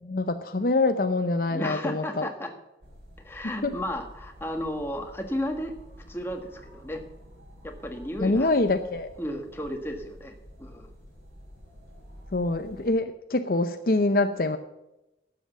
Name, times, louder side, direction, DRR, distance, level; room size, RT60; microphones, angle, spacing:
voice 1, 0.0-2.3 3.6-3.7 8.2-9.1 12.3-14.6, left 2 dB, 50° left, 8 dB, 0.7 m, -25 dB
voice 2, 1.5-2.5 3.2-5.7 6.1-7.0 7.6-8.5 9.2-10.9, equal, 15° left, 4 dB, 1.5 m, -33 dB
sound 1, 2.8-12.9, equal, 70° right, 5.8 m, -49 dB
12.0 x 7.9 x 7.2 m, 0.93 s
head